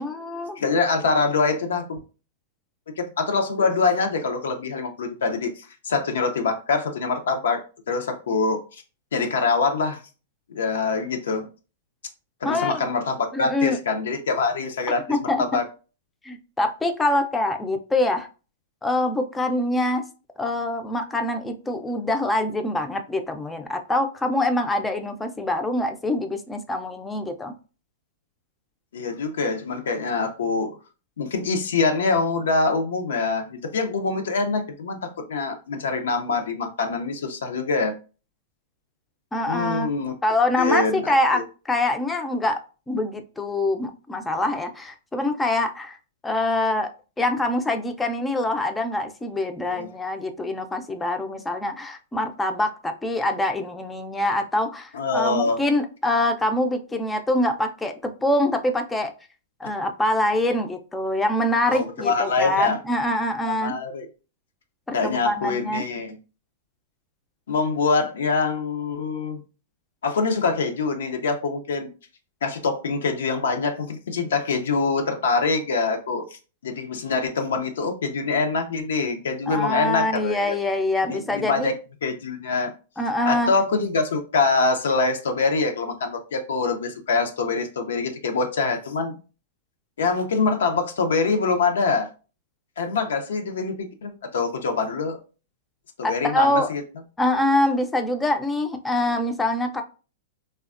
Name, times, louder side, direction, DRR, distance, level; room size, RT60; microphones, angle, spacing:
voice 1, 0.0-0.6 12.4-12.8 13.3-13.8 15.1-15.5 16.2-18.3 18.8-20.0 20.4-27.5 39.3-39.9 40.2-42.6 42.9-46.0 46.2-46.9 47.2-59.1 59.6-63.8 64.9-65.8 79.5-81.7 83.0-83.5 96.0-96.7 97.2-99.8, left 1 dB, 10° left, 6 dB, 0.3 m, -24 dB
voice 2, 0.6-2.0 3.0-8.8 9.1-10.0 10.5-11.5 12.4-15.6 28.9-30.7 31.2-37.9 39.5-40.1 40.6-41.4 49.7-49.9 54.9-55.6 61.7-62.8 63.4-64.1 64.9-66.2 67.5-69.4 70.0-71.9 72.4-80.6 81.1-82.7 83.3-89.2 90.0-92.1 92.8-95.2 96.0-96.8, left 4 dB, 85° left, 5 dB, 0.4 m, -24 dB
3.3 x 2.1 x 2.4 m, 0.35 s
hypercardioid pair, 135°, 0 cm